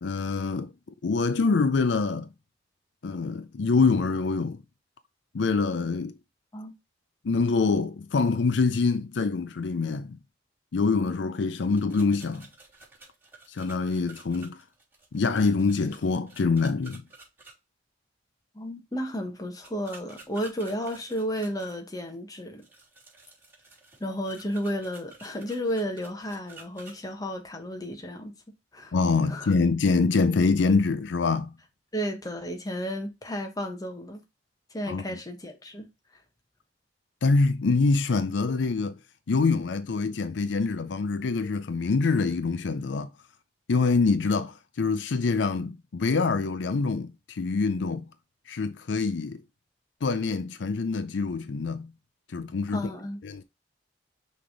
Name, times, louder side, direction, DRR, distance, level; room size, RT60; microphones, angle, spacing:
voice 1, 0.0-0.7 1.0-2.3 3.0-4.6 5.3-6.1 7.2-10.2 10.7-12.5 13.5-14.6 15.1-17.0 28.9-31.5 34.9-35.2 37.2-38.9 39.3-43.1 43.7-48.1 48.5-49.4 50.0-51.9 52.3-52.9 53.2-53.4, left 4 dB, 75° left, 0.5 m, -25 dB
sound 1, 11.7-17.5 19.6-21.8 22.6-26.9, right 3 dB, 10° right, 3.3 m, -51 dB
voice 2, 18.5-22.6 24.0-28.3 28.7-28.9 29.3-29.5 31.9-34.2 34.7-35.9 52.7-53.2, equal, 20° left, 1.2 m, -33 dB
5.9 x 3.5 x 4.8 m
head